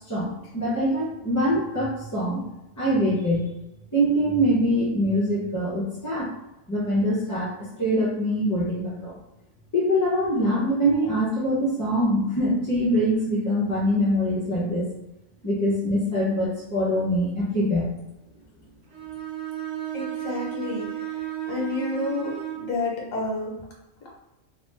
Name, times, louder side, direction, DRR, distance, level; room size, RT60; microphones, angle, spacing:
voice 1, 0.1-2.4 2.8-3.4 3.9-6.3 6.7-9.1 9.7-14.9 15.4-17.9, equal, 25° left, -9 dB, 0.4 m, -24 dB
Bowed string instrument, 18.9-22.7, right 12 dB, 85° right, 1.2 m, -33 dB
voice 2, 19.9-21.2 21.5-23.6, left 3 dB, 90° left, -2 dB, 1.3 m, -30 dB
3.1 x 2.0 x 3.2 m, 0.94 s
omnidirectional pair, 1.3 m